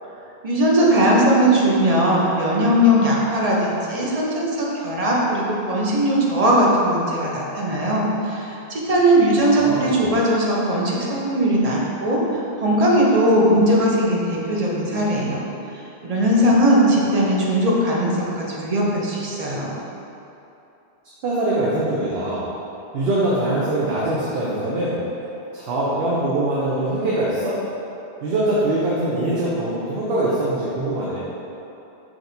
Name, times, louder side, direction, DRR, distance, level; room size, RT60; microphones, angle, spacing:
voice 1, 0.4-15.4 16.0-19.7, equal, 40° right, -4 dB, 0.6 m, -19 dB
voice 2, 9.4-10.1 21.2-22.5 22.9-25.0 25.5-27.6 28.2-31.2, right 1 dB, 70° right, -8 dB, 0.9 m, -23 dB
6.1 x 3.0 x 2.7 m, 2.9 s
omnidirectional pair, 1.1 m